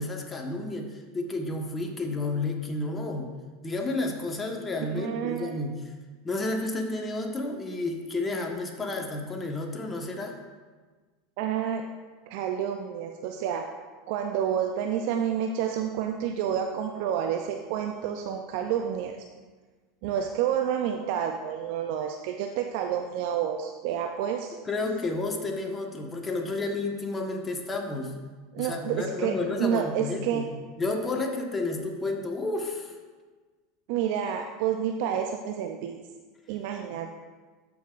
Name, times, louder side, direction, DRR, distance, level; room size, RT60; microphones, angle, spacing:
voice 1, 0.0-3.3 3.6-5.9 6.2-10.3 24.6-28.1 28.6-30.5 30.8-32.9, left 2 dB, 20° left, 2 dB, 1.3 m, -31 dB
voice 2, 4.9-5.6 11.4-11.8 12.3-13.7 14.1-19.2 20.0-24.5 28.5-30.5 33.9-36.0 36.5-37.1, right 9 dB, 65° right, 4 dB, 0.5 m, -29 dB
13.5 x 5.7 x 2.5 m, 1.4 s
hypercardioid pair, 95°, 0 cm